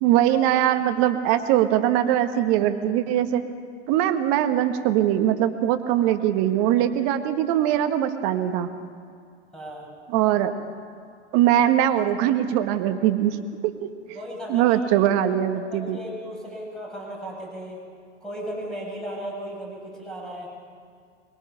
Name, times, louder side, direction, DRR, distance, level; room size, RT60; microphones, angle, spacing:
voice 1, 0.0-3.4 3.9-8.7 10.1-10.5 11.3-13.4 13.6-13.9 14.5-16.0, right 11 dB, 45° right, 9 dB, 1.5 m, -21 dB
voice 2, 9.5-9.9 14.1-14.8 15.6-17.8 18.2-20.5, equal, ahead, -3 dB, 7.3 m, -36 dB
23.5 x 21.5 x 5.7 m, 2.2 s
figure-of-eight pair, 100°, 35 cm